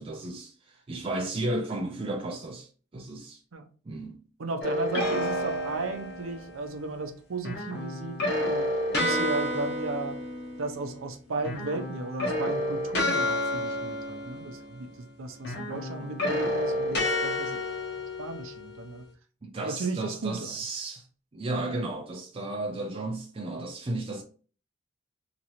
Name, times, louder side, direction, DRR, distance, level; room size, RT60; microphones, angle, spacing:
voice 1, 0.0-3.4 3.9-4.2 14.4-14.5 16.0-16.1 19.4-21.1 21.3-24.2, right 2 dB, 30° right, 0.4 m, -34 dB
voice 2, 4.4-10.2 10.6-17.7 18.2-19.0 19.6-20.6, right 3 dB, 85° right, 0.6 m, -35 dB
sound 1, 4.6-6.5 7.4-11.1 11.4-15.0 15.4-18.9, left 1 dB, 55° left, 1.1 m, -30 dB
2.9 x 2.9 x 2.6 m
head